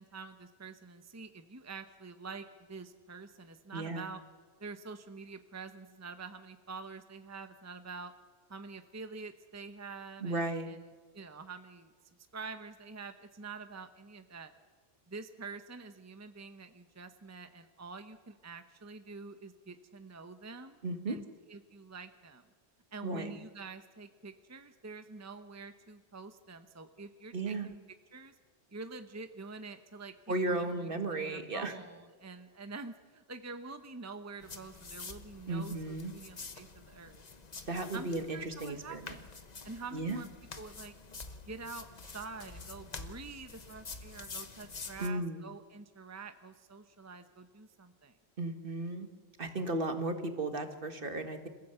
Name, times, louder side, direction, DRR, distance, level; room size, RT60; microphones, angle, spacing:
voice 1, 0.0-4.2 4.6-8.1 8.5-11.9 12.3-14.5 15.1-20.8 21.1-22.4 22.9-27.8 28.1-28.3 28.7-37.2 37.9-39.3 39.6-40.3 40.6-40.9 41.4-48.2, right 4 dB, 15° right, 9 dB, 0.9 m, -47 dB
voice 2, 3.7-4.1 10.2-10.7 20.8-21.2 23.0-23.3 27.3-27.7 30.3-31.7 35.5-36.1 37.7-39.2 39.9-40.2 45.0-45.4 48.4-49.1 49.4-51.5, right 2 dB, 60° right, 7 dB, 1.9 m, -35 dB
sound 1, 34.4-45.1, left 4 dB, 40° left, 1.2 m, -48 dB
27.0 x 15.5 x 8.0 m, 1.5 s
omnidirectional pair, 1.0 m